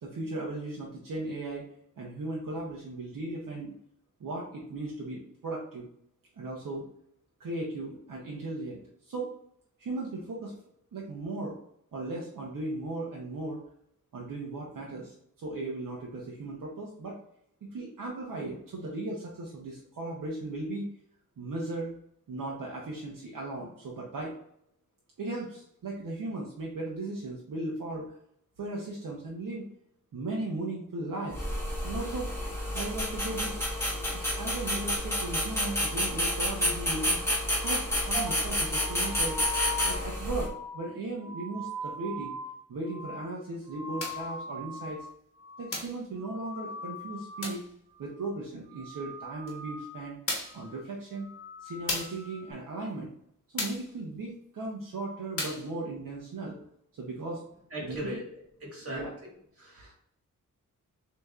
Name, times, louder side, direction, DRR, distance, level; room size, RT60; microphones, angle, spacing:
voice 1, 0.0-1.6 2.0-3.7 4.2-5.9 6.4-6.9 7.4-8.8 9.0-9.3 9.8-10.5 10.9-11.6 11.9-13.6 14.1-17.2 17.6-20.9 21.4-21.9 22.3-24.3 25.2-28.1 28.6-29.7 30.1-31.4 31.8-32.3 32.7-33.6 34.1-37.2 37.6-39.4 39.8-42.3 42.7-45.0 45.6-47.6 48.0-50.2 50.5-51.3 51.6-53.1 53.5-56.6 56.9-57.4 57.8-58.2 58.9-59.1, right 2 dB, 80° right, -3 dB, 0.8 m, -37 dB
sound 1, 31.3-40.5, equal, 10° left, 1.2 m, -30 dB
sound 2, 38.1-45.1 45.4-45.9 46.2-47.6 47.9-48.4 48.7-50.1 50.5-50.8 51.2-52.5, left 1 dB, 15° right, 0.7 m, -41 dB
sound 3, 44.0-44.3 45.7-46.0 47.4-47.7 49.5-49.6 50.3-50.6 51.9-52.2 53.6-53.9 55.4-55.7, left 2 dB, 45° left, 1.2 m, -34 dB
voice 2, 57.7-58.2 58.6-59.0 59.6-60.0, equal, 45° right, -2 dB, 1.7 m, -37 dB
6.4 x 2.9 x 2.4 m, 0.69 s
wide cardioid pair, 155°, 32 cm